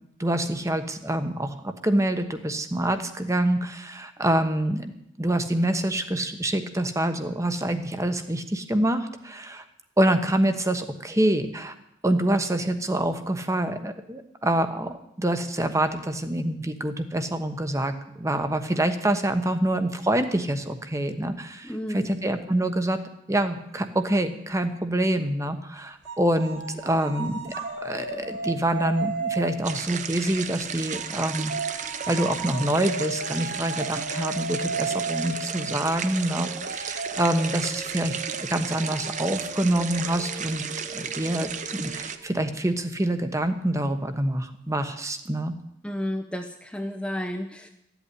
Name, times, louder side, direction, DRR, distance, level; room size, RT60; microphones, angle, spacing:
voice 1, 0.2-4.9 5.2-9.6 10.0-11.7 12.0-23.0 23.3-27.5 27.8-40.6 40.9-45.5, right 1 dB, 15° right, 8 dB, 1.1 m, -26 dB
voice 2, 21.6-22.1 45.8-47.7, equal, 5° left, 3 dB, 0.7 m, -32 dB
sound 1, 26.0-30.4 30.9-42.3, right 3 dB, 60° right, 2.9 m, -35 dB
sound 2, 29.6-42.2, right 7 dB, 40° right, 0.8 m, -34 dB
14.5 x 8.2 x 10.0 m, 0.79 s
head